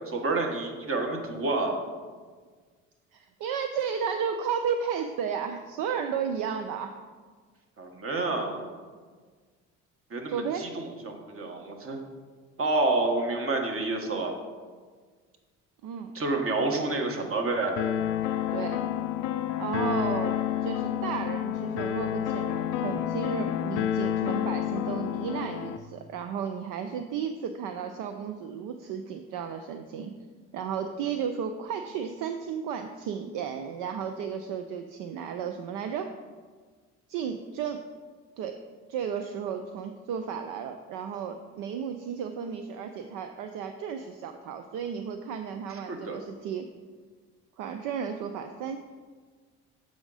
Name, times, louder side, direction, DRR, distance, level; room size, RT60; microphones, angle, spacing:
voice 1, 0.1-1.8 7.8-8.7 10.1-12.0 12.6-14.3 16.1-17.8 45.7-46.2, right 2 dB, 40° right, 3 dB, 1.4 m, -29 dB
voice 2, 3.1-6.9 10.3-10.7 15.8-16.1 18.5-18.8 19.6-20.4 20.6-30.1 30.5-36.1 37.1-37.8 38.4-38.6 38.9-46.7 47.6-48.8, right 7 dB, 60° right, 7 dB, 0.5 m, -33 dB
sound 1, 17.8-25.8, left 11 dB, 75° left, 0.5 m, -29 dB
7.0 x 5.0 x 4.0 m, 1.5 s
hypercardioid pair, 65°, 36 cm